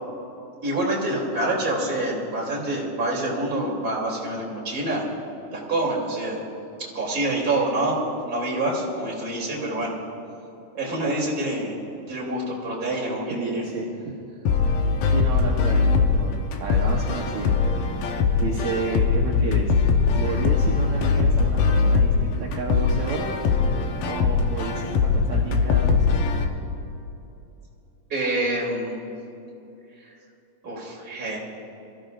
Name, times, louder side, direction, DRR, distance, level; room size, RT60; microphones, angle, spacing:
voice 1, 0.6-5.0 5.5-6.4 6.8-9.9 10.7-11.8 12.1-13.6 28.1-29.0 30.6-31.4, right 1 dB, 30° right, -4 dB, 3.5 m, -26 dB
voice 2, 13.3-13.9 15.1-17.8 18.4-19.7 20.1-23.3 24.1-26.3, right 4 dB, 65° right, -2 dB, 2.3 m, -31 dB
sound 1, 14.5-26.5, left 5 dB, 85° left, 2.6 m, -21 dB
26.0 x 14.5 x 2.6 m, 2.8 s
omnidirectional pair, 3.8 m